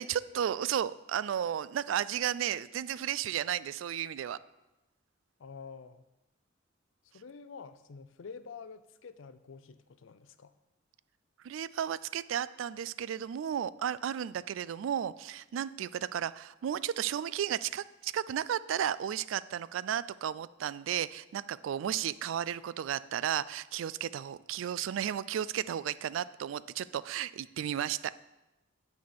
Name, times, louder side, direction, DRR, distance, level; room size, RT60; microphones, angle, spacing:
voice 1, 0.0-4.4 11.4-28.1, right 9 dB, 85° right, 17 dB, 0.3 m, -33 dB
voice 2, 5.4-6.0 7.1-10.5, left 5 dB, 80° left, 13 dB, 0.5 m, -48 dB
9.4 x 4.2 x 7.0 m, 1.0 s
head